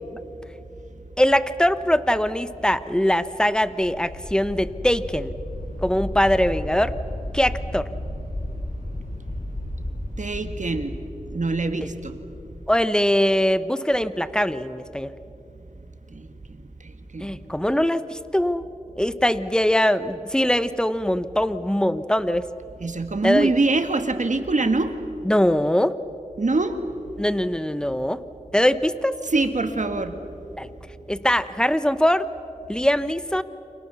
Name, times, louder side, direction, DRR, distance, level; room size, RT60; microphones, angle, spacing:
voice 1, 1.2-5.3 5.8-6.9 7.3-7.9 11.8-11.9 12.7-15.1 17.2-18.6 19.0-22.5 23.2-23.5 25.2-25.9 27.2-28.2 28.5-29.2 30.6-30.7 31.1-32.3 32.7-33.4, equal, 5° left, 13 dB, 1.0 m, -22 dB
sound 1, 2.8-12.7, left 1 dB, 75° left, 6.2 m, -34 dB
voice 2, 10.2-11.0 11.3-12.1 16.2-16.3 17.1-17.3 22.8-24.9 26.4-26.8 29.3-30.1, right 3 dB, 55° right, 7 dB, 1.9 m, -23 dB
29.5 x 25.5 x 7.0 m, 2.9 s
wide cardioid pair, 60°, 15 cm